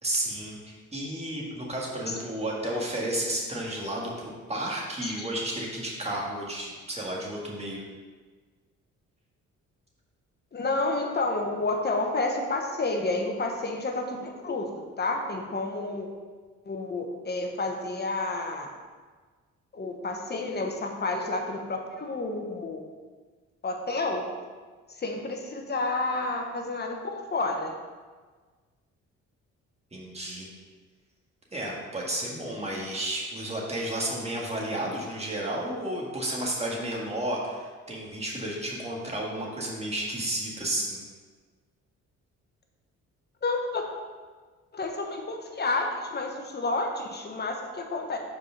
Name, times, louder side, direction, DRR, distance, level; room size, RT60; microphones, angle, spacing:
voice 1, 0.0-7.8 29.9-30.5 31.5-41.0, right 1 dB, 20° right, -3 dB, 1.8 m, -32 dB
voice 2, 10.5-14.7 15.0-16.1 16.6-18.7 19.7-22.8 23.6-24.2 25.0-27.7 43.4-43.8 44.7-48.2, left 2 dB, 35° left, 2 dB, 1.1 m, -30 dB
5.2 x 4.7 x 5.7 m, 1.4 s
cardioid pair, 90°, 30 cm